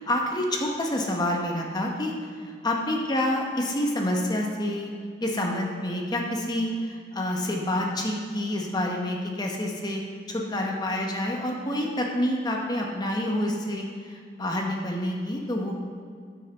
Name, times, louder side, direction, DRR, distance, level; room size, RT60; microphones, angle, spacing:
voice 1, 0.0-2.1 2.6-4.9 5.2-10.0 10.3-15.8, left 1 dB, 25° left, 0 dB, 1.0 m, -28 dB
8.2 x 6.3 x 5.6 m, 2.1 s
head